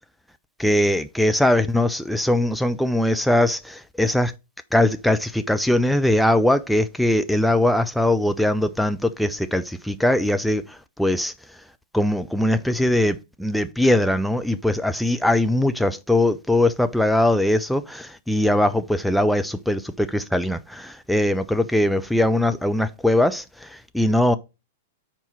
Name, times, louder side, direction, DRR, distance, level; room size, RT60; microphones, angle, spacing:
voice 1, 0.6-4.3 4.7-11.3 11.9-24.4, left 1 dB, ahead, 0.5 m, -21 dB
5.4 x 4.3 x 5.8 m
figure-of-eight pair, 100°, 0 cm